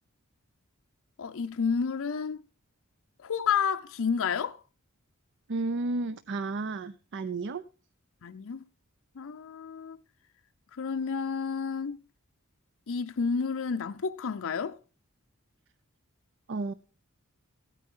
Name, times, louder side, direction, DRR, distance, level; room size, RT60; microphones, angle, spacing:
voice 1, 1.2-2.4 3.2-4.6 8.2-8.6 9.2-10.0 10.8-12.0 12.9-14.8, left 6 dB, 65° left, 0.6 m, -30 dB
voice 2, 5.5-7.6 16.5-16.7, right 3 dB, 55° right, 0.5 m, -32 dB
15.5 x 9.1 x 3.7 m
head